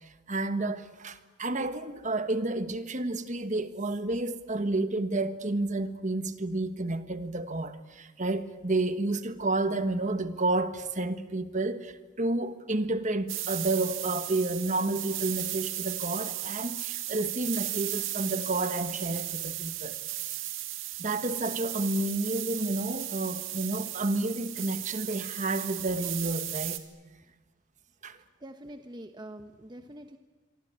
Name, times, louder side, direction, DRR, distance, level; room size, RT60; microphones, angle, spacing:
voice 1, 0.0-20.0 21.0-26.8 28.0-28.2, right 2 dB, 40° right, 1.5 m, -30 dB
sound 1, 13.3-26.8, right 14 dB, 85° right, 2.1 m, -36 dB
voice 2, 28.4-30.2, right 1 dB, 20° right, 1.1 m, -44 dB
26.5 x 24.0 x 8.8 m
head